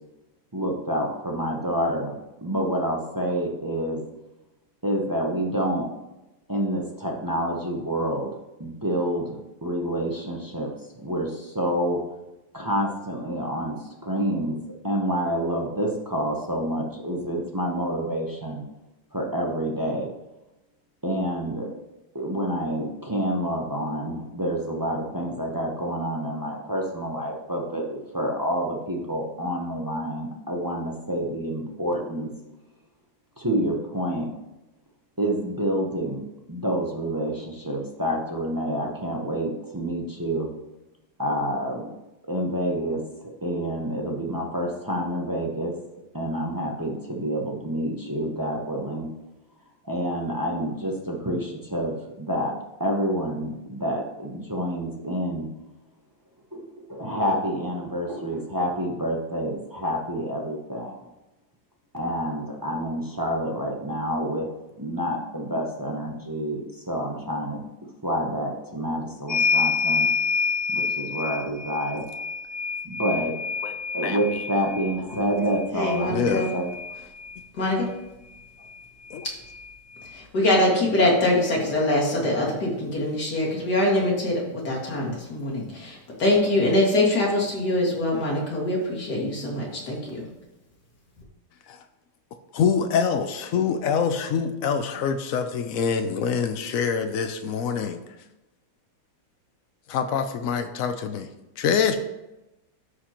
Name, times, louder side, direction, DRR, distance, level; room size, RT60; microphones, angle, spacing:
voice 1, 0.5-2.1 2.4-4.0 4.8-5.9 6.5-8.3 8.6-10.7 11.0-12.0 12.5-14.6 14.8-18.6 19.1-20.1 21.0-21.7 22.1-32.3 33.4-34.3 35.2-36.2 36.5-40.5 41.2-41.9 42.3-43.0 43.4-45.7 46.1-49.1 49.8-55.5 56.5-61.0 61.9-64.5 64.8-67.6 68.0-70.1 70.7-72.0 72.8-73.3 73.9-76.7, equal, 20° right, -1 dB, 0.5 m, -28 dB
sound 1, 69.3-77.4 78.7-78.8 79.1-80.1, left 5 dB, 20° left, 1.9 m, -28 dB
voice 2, 74.0-74.4 76.1-76.5 79.1-79.3 91.7-91.8 92.5-98.0 99.9-101.3 101.6-102.0, left 6 dB, 85° left, 7 dB, 0.7 m, -25 dB
voice 3, 75.7-76.5 77.5-77.9 79.2-79.3 80.1-90.3, left 1 dB, 55° left, -3 dB, 2.6 m, -23 dB
13.0 x 5.0 x 3.0 m, 0.98 s
omnidirectional pair, 2.1 m